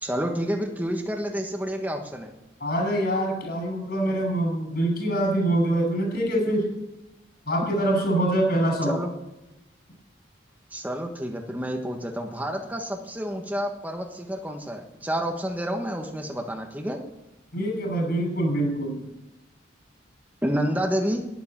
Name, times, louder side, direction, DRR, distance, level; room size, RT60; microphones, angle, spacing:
voice 1, 0.0-2.3 8.9-9.1 10.7-17.0 20.4-21.2, equal, 10° right, 2 dB, 1.4 m, -29 dB
voice 2, 2.6-6.7 7.5-9.0 17.5-19.0, right 1 dB, 50° left, 2 dB, 6.7 m, -24 dB
12.0 x 11.0 x 7.5 m, 0.97 s
head